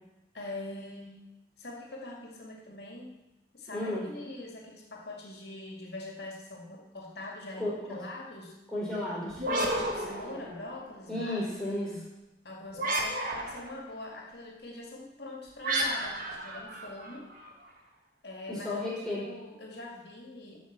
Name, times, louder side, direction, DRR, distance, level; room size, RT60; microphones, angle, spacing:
voice 1, 0.3-1.2 1.6-3.1 3.5-8.6 9.6-12.1 12.4-17.3 18.2-18.8 19.1-20.6, left 2 dB, 65° left, -1 dB, 2.1 m, -43 dB
voice 2, 3.7-4.0 7.6-8.0 8.7-9.4 11.1-11.9 18.5-19.2, left 1 dB, 5° left, -8 dB, 4.7 m, -33 dB
sound 1, 9.3-10.9 12.7-13.8 15.6-17.5, right 1 dB, 50° right, 1.9 m, -32 dB
12.5 x 5.8 x 7.4 m, 0.99 s
head